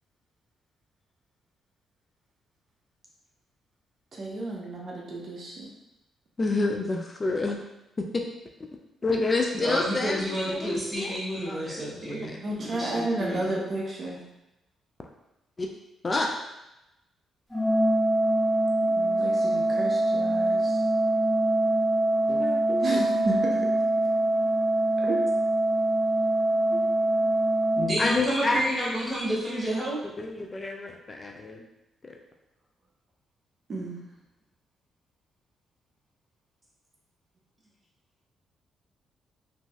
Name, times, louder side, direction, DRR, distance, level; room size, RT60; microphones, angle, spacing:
voice 1, 4.1-5.7 12.4-14.2 18.8-20.8 22.8-23.7 25.0-25.2 26.7-26.8 33.7-34.0, right 2 dB, 50° right, -3 dB, 0.6 m, -32 dB
voice 2, 6.4-7.6 8.0-8.2 9.0-11.2 11.5-12.5 15.6-15.7 16.0-16.4 22.3-23.0 28.0-31.6 32.0-32.2, left 3 dB, 35° left, 2 dB, 0.3 m, -29 dB
voice 3, 9.6-13.6 27.8-30.0, right 1 dB, 25° right, -6 dB, 1.2 m, -30 dB
Organ, 17.5-28.5, right 1 dB, 10° left, 1.3 m, -24 dB
Marimba xylophone / Wood, 23.0-25.2, right 1 dB, 70° right, 0.9 m, -42 dB
2.9 x 2.6 x 2.3 m, 0.92 s
cardioid pair, 75°, 0 cm